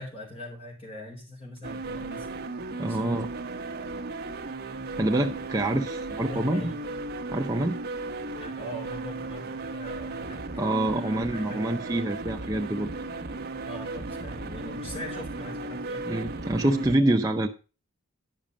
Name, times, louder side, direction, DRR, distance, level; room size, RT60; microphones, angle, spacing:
voice 1, 0.0-2.4 2.8-3.3 6.3-6.8 8.4-11.7 13.6-16.0, left 1 dB, 25° left, -1 dB, 4.4 m, -41 dB
sound 1, 1.6-17.0, right 2 dB, 50° right, 1.0 m, -36 dB
voice 2, 2.8-3.3 5.0-6.7 7.3-7.8 10.6-12.9 16.1-17.5, right 1 dB, 15° right, 2 dB, 0.7 m, -26 dB
10.5 x 6.2 x 5.2 m, 0.33 s
head